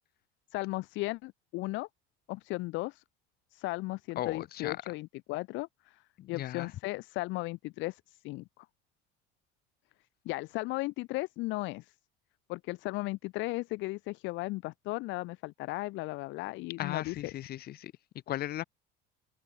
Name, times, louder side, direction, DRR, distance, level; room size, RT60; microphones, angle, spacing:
voice 1, 0.5-1.9 2.3-3.0 3.5-6.0 6.3-8.7 10.2-11.8 12.5-17.2, left 21 dB, 65° left, 4.3 m, -36 dB
voice 2, 4.2-4.8 6.2-6.7 16.8-17.9 18.3-18.6, left 13 dB, 50° left, 6.3 m, -36 dB
open air
cardioid pair, 140°, 21 cm